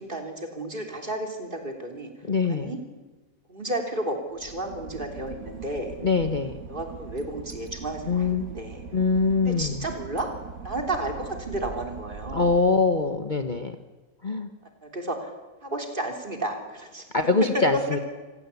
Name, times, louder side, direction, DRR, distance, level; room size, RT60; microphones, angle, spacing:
voice 1, 0.0-2.1 2.4-2.8 3.5-5.9 6.7-8.8 9.4-10.3 10.6-12.6 14.8-15.3 15.6-17.1 17.5-17.6, right 1 dB, 30° right, 3 dB, 3.5 m, -32 dB
voice 2, 2.3-2.7 6.0-6.6 8.1-8.5 8.9-9.8 12.3-13.7 14.2-14.5 17.1-18.0, left 4 dB, 35° left, 7 dB, 1.3 m, -23 dB
Boat Water vehicle / Engine, 4.3-13.3, right 5 dB, 65° right, 2.1 m, -41 dB
27.0 x 16.0 x 8.4 m, 1.2 s
omnidirectional pair, 1.6 m